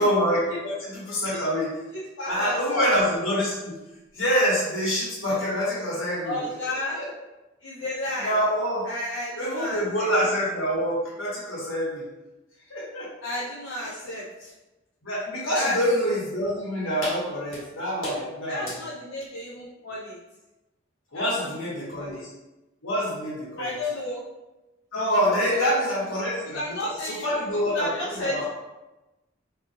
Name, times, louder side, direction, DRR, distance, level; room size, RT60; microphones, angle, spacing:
voice 1, 0.0-1.7 2.3-3.8 4.1-6.4 6.9-7.1 8.2-8.8 9.4-12.0 12.7-13.1 15.0-18.8 21.1-22.2 22.8-23.7 24.9-28.4, equal, 90° left, -6 dB, 1.3 m, -26 dB
voice 2, 1.9-2.9 6.2-7.1 7.6-8.4 8.8-10.1 13.2-14.5 15.5-15.8 18.5-20.2 21.1-22.2 23.6-24.2 25.4-25.7 26.5-28.4, left 1 dB, 75° left, -4 dB, 0.5 m, -33 dB
4.0 x 2.4 x 2.7 m, 1.0 s
head